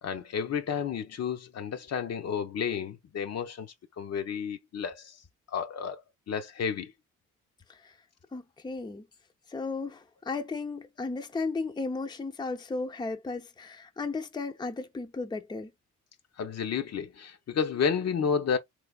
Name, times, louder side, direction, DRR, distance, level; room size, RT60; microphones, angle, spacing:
voice 1, 0.0-5.1 5.5-6.0 6.3-6.9 16.4-18.6, left 7 dB, 50° left, 0.7 m, -31 dB
voice 2, 8.3-9.0 9.5-15.7, left 3 dB, 15° left, 0.5 m, -35 dB
3.4 x 3.2 x 2.3 m
supercardioid pair, 60°, 33 cm